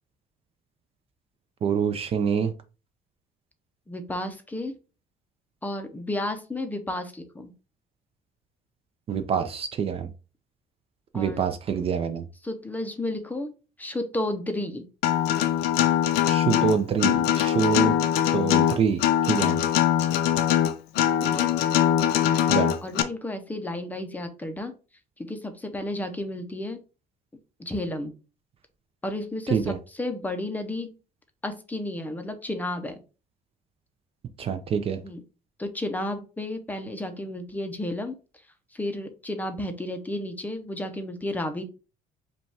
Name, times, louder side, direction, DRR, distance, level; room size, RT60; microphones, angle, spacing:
voice 1, 1.6-2.5 9.1-10.1 11.1-12.3 16.2-18.0 18.3-19.0 19.3-19.6 22.5-22.7 29.5-29.8 34.4-35.0, right 7 dB, 35° right, 0.4 m, -26 dB
voice 2, 3.9-4.8 5.6-7.5 11.1-11.4 12.4-13.5 13.8-14.8 21.2-21.5 22.8-24.7 25.2-26.8 27.6-28.1 29.0-30.9 31.4-33.0 35.0-35.2 35.6-38.2 38.7-41.6, left 1 dB, 10° left, 0.5 m, -32 dB
Acoustic guitar, 15.0-23.0, left 11 dB, 85° left, 0.5 m, -22 dB
5.1 x 2.3 x 3.2 m
cardioid pair, 145°, 16 cm